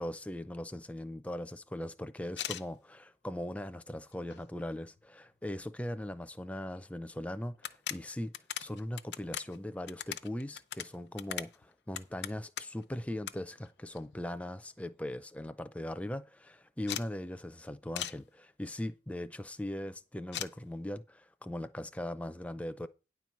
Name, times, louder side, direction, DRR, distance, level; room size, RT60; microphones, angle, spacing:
voice 1, 0.0-8.3 8.6-22.9, left 1 dB, 10° left, 0.5 m, -40 dB
sound 1, 2.3-2.7 3.4-3.5 3.9-4.6 5.0-5.1 5.3-5.4 6.8-6.9 7.1-7.2 7.5-12.8 13.2-13.4 13.6-14.4 14.8-14.9 15.1-15.2 15.5-15.8 16.9-17.1 18.0-18.2 20.3-20.5, left 11 dB, 85° left, 0.7 m, -40 dB
9.8 x 4.5 x 7.2 m
head